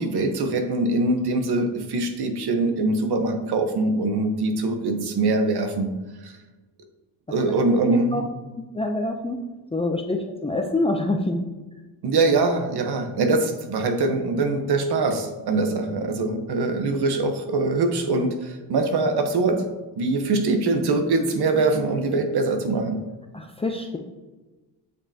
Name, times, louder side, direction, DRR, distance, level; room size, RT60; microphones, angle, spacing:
voice 1, 0.0-5.9 6.2-6.3 7.3-8.2 12.0-19.6 20.0-23.0, right 3 dB, 65° right, 6 dB, 1.1 m, -23 dB
voice 2, 7.7-8.2 8.7-9.4 9.7-11.4 23.3-24.0, left 2 dB, 15° left, 2 dB, 0.6 m, -26 dB
8.2 x 5.3 x 2.8 m, 1.2 s
cardioid pair, 85°, 42 cm